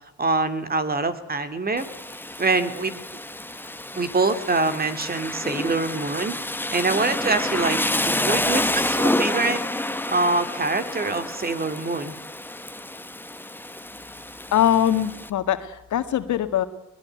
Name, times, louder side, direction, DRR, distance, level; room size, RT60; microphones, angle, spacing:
voice 1, 0.2-1.9 2.4-3.0 3.9-9.6 10.1-12.2, right 3 dB, 30° right, 11 dB, 2.7 m, -25 dB
Rain, 1.8-15.3, left 1 dB, 5° left, 1.3 m, -29 dB
voice 2, 14.5-16.7, left 10 dB, 70° left, 10 dB, 2.0 m, -22 dB
21.0 x 20.0 x 9.2 m, 0.85 s
cardioid pair, 90°, 30 cm